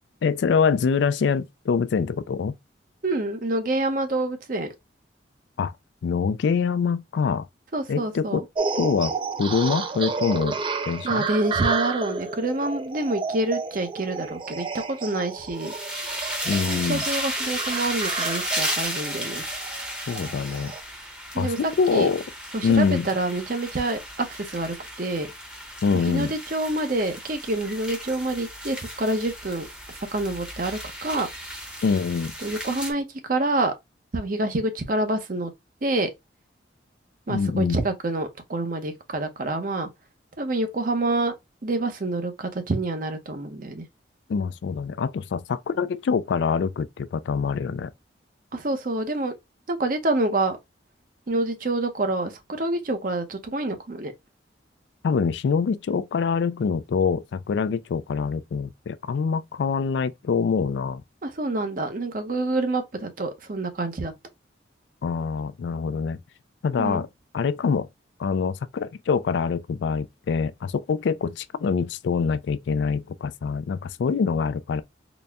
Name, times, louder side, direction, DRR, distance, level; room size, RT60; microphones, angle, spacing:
voice 1, 0.2-2.6 5.6-5.7 6.0-7.5 7.9-8.4 8.8-11.2 16.4-17.0 20.1-20.7 21.4-22.2 22.6-23.1 25.8-26.3 31.8-32.3 37.3-37.8 44.3-47.9 55.0-61.0 65.0-66.2 66.6-67.1 67.3-67.9 68.2-74.8, left 5 dB, 70° left, 0.3 m, -25 dB
voice 2, 3.0-4.7 7.7-8.4 11.0-15.7 16.7-19.4 21.3-22.1 22.5-25.3 25.9-29.7 30.1-31.3 32.4-33.7 34.1-35.5 35.8-36.1 37.3-39.9 40.4-41.3 41.6-43.9 48.5-49.3 49.7-50.6 51.3-54.1 61.2-64.1 66.8-67.0, right 2 dB, 45° right, 0.7 m, -27 dB
sound 1, 8.6-20.8, right 4 dB, 25° right, 0.3 m, -31 dB
sound 2, 15.6-32.9, equal, 5° right, 0.8 m, -34 dB
4.0 x 2.1 x 3.4 m
head